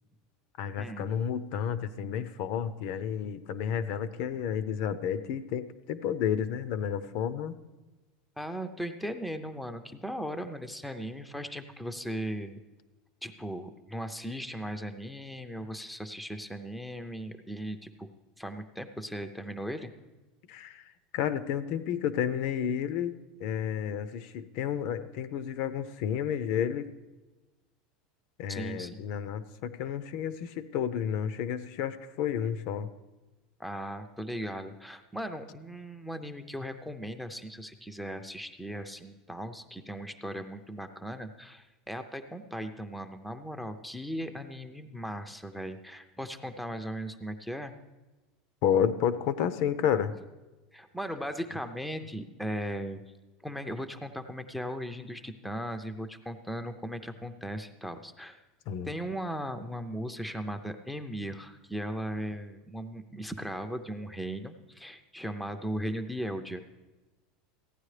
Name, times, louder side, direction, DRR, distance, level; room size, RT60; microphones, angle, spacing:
voice 1, 0.6-7.6 20.5-20.8 21.1-26.9 28.4-32.9 48.6-50.1 58.7-58.9, left 8 dB, 55° left, 14 dB, 0.5 m, -31 dB
voice 2, 8.4-12.6 13.2-18.1 18.4-19.9 28.5-29.1 33.6-47.7 50.7-53.0 53.4-58.4 58.8-66.6, equal, ahead, 7 dB, 0.4 m, -37 dB
15.5 x 9.7 x 3.3 m, 1.1 s
supercardioid pair, 165°, 0 cm